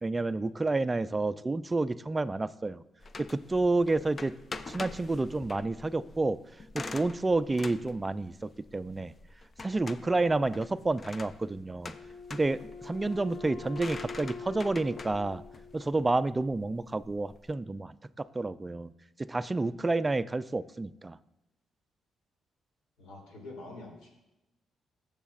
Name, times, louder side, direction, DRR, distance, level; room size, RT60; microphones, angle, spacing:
voice 1, 0.0-2.8 3.2-4.4 4.7-6.4 6.7-9.1 9.6-11.9 12.3-15.4 15.7-18.9 19.2-21.2, right 2 dB, 20° right, 15 dB, 0.3 m, -30 dB
sound 1, 3.0-17.5, left 3 dB, 35° left, 0.5 m, -45 dB
Wind instrument woodwind instrument, 11.9-16.4, left 5 dB, 55° left, 1.1 m, -45 dB
voice 2, 23.0-24.1, left 2 dB, 85° left, -1 dB, 3.2 m, -45 dB
15.5 x 7.2 x 2.5 m, 0.94 s
cardioid pair, 90°, 0 cm